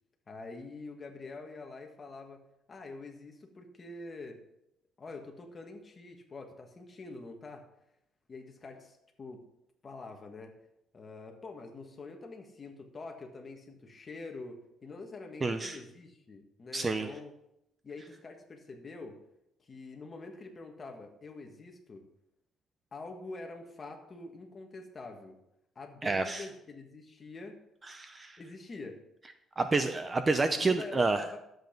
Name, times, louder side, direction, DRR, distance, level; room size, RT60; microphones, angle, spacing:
voice 1, 0.3-2.4 2.7-4.4 5.0-7.7 8.3-9.4 9.8-10.5 10.9-17.3 17.8-19.2 19.7-22.0 22.9-25.4 25.8-27.6 28.4-29.0 29.6-29.7 30.4-31.4, left 3 dB, 25° left, 3 dB, 1.7 m, -45 dB
voice 2, 15.4-15.8 16.7-17.1 26.0-26.5 27.9-28.4 29.6-31.3, right 3 dB, 20° right, 9 dB, 0.6 m, -29 dB
11.5 x 8.0 x 5.3 m, 0.82 s
cardioid pair, 150°, 0 cm